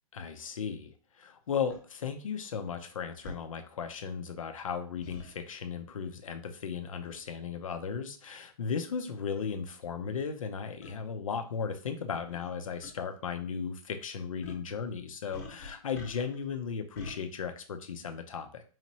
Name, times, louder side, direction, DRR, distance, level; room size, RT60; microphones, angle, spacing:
voice 1, 0.1-18.6, left 6 dB, 65° left, 7 dB, 0.7 m, -36 dB
sound 1, 1.7-1.8 3.2-3.4 5.0-5.3 7.1-7.3 8.1-8.2 9.0-9.1 9.4-9.5 10.8-11.0 12.3-12.5 12.8-12.9 14.4-14.7 15.3-16.4 17.0-17.2, left 2 dB, 30° left, 1.1 m, -45 dB
4.9 x 3.1 x 2.8 m, 0.39 s
hypercardioid pair, 175°, 18 cm